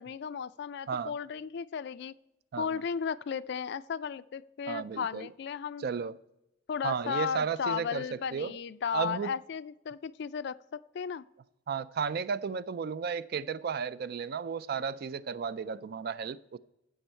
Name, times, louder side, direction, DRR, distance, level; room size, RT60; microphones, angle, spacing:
voice 1, 0.0-2.1 2.6-5.8 6.7-11.2, left 6 dB, 55° left, 16 dB, 0.3 m, -35 dB
voice 2, 4.7-5.3 5.8-6.2 6.8-8.5 8.9-9.3 11.7-16.6, right 6 dB, 50° right, 17 dB, 0.3 m, -34 dB
15.5 x 5.4 x 4.4 m, 0.89 s
head